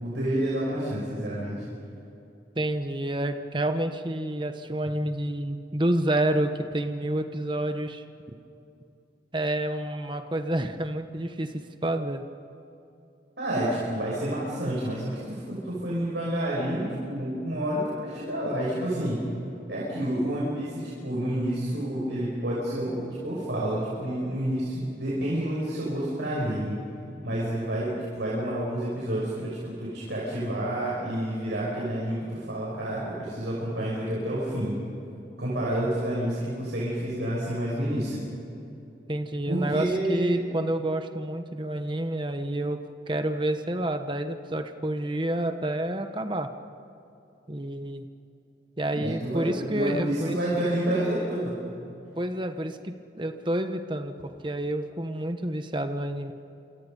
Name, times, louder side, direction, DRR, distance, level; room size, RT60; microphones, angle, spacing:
voice 1, 0.0-1.6 13.4-19.2 19.7-26.8 27.2-34.7 35.4-38.2 39.5-40.4 48.9-51.5, right 1 dB, 75° right, -6 dB, 6.6 m, -29 dB
voice 2, 2.6-8.3 9.3-11.5 11.8-12.2 39.1-46.5 47.5-48.1 48.8-50.4 52.2-56.3, right 1 dB, 25° right, 7 dB, 1.0 m, -29 dB
28.0 x 27.5 x 5.4 m, 2.7 s
head